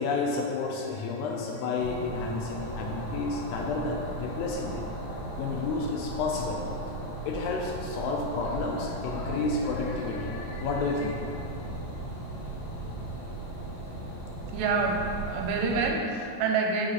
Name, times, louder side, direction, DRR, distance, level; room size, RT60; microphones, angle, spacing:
voice 1, 0.0-4.9 5.4-6.7 7.3-11.2, left 3 dB, 80° left, 0 dB, 2.5 m, -31 dB
sound 1, 1.8-15.9, right 1 dB, 65° left, 3.0 m, -37 dB
voice 2, 14.5-16.9, right 4 dB, 85° right, 1 dB, 2.8 m, -27 dB
6.4 x 4.0 x 4.8 m, 2.6 s
omnidirectional pair, 5.0 m